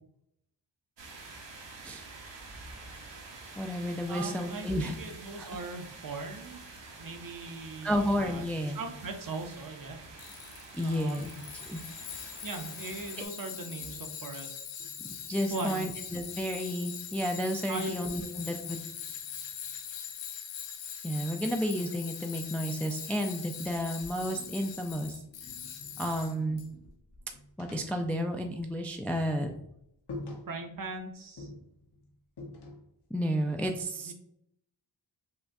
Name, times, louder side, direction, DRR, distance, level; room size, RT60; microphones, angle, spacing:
sound 1, 1.0-13.3, right 3 dB, 70° right, 0.9 m, -48 dB
voice 1, 3.6-5.0 5.4-5.6 7.8-8.8 10.7-11.3 11.7-11.8 15.3-18.8 21.0-25.1 26.0-26.6 27.6-29.5 33.1-34.1, equal, 5° left, 3 dB, 0.3 m, -31 dB
voice 2, 4.1-6.6 7.0-8.4 8.7-10.0 10.8-11.4 12.4-14.5 15.5-15.9 17.7-17.9 30.5-31.5 34.0-34.1, right 3 dB, 50° right, 5 dB, 0.7 m, -39 dB
Tools, 10.2-26.7, left 8 dB, 75° left, 0.6 m, -42 dB
sound 2, 13.4-16.6 16.9-19.8 21.2-23.2 23.6-28.9 29.2-29.4 29.7-29.8 30.1-31.0 31.4-33.1, left 2 dB, 60° left, 0.9 m, -50 dB
5.6 x 2.2 x 2.6 m, 0.75 s
wide cardioid pair, 85°, 44 cm